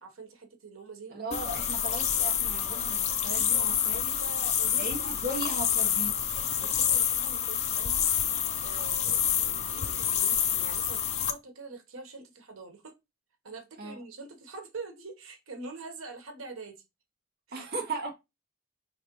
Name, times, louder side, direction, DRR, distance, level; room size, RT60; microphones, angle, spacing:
voice 1, 0.0-1.3 3.9-5.4 6.6-8.0 8.6-12.9 13.4-16.8 17.5-17.7, right 3 dB, 90° right, 1.0 m, -44 dB
voice 2, 1.1-4.0 4.8-6.3 13.8-14.0 17.5-18.1, right 2 dB, 50° right, 0.9 m, -37 dB
sound 1, 1.3-11.3, left 9 dB, 35° left, 0.5 m, -28 dB
4.8 x 3.3 x 2.9 m
head